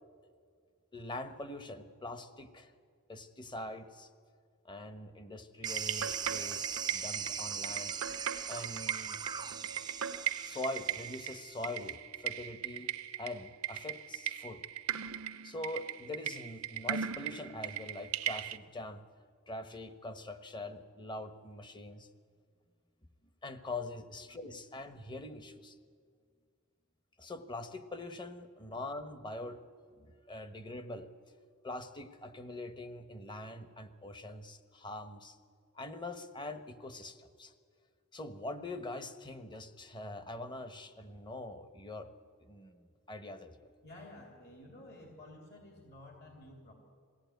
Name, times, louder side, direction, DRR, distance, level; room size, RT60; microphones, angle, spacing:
voice 1, 0.9-2.7 3.1-4.1 4.6-7.9 8.5-9.2 10.4-12.9 13.2-14.6 15.4-19.0 19.5-22.1 23.4-25.8 27.2-29.6 29.9-31.1 31.6-35.4 35.7-37.5 38.1-42.1 42.4-43.7, left 2 dB, 20° left, 9 dB, 1.0 m, -43 dB
sound 1, 5.6-11.8, right 6 dB, 20° right, 0.5 m, -40 dB
sound 2, 5.6-18.6, right 9 dB, 80° right, 0.7 m, -38 dB
voice 2, 43.8-46.7, left 1 dB, 50° left, 1 dB, 2.8 m, -52 dB
21.5 x 16.0 x 9.3 m, 2.1 s
head